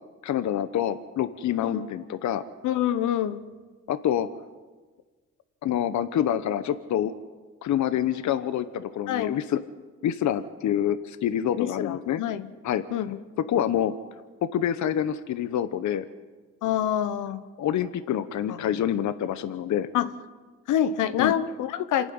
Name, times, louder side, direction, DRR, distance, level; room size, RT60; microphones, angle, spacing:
voice 1, 0.2-2.5 3.9-4.3 5.6-7.1 7.6-9.6 10.0-12.2 12.6-12.8 13.5-13.9 14.4-16.0 17.6-19.9 21.2-21.3, left 10 dB, 70° left, 12 dB, 1.0 m, -26 dB
voice 2, 2.6-3.4 9.1-9.4 11.6-12.5 12.9-13.2 16.6-17.4 18.5-18.6 19.9-20.1 20.7-22.1, left 10 dB, 85° left, 12 dB, 1.2 m, -26 dB
27.0 x 11.5 x 9.5 m, 1.4 s
cardioid pair, 90°, 30 cm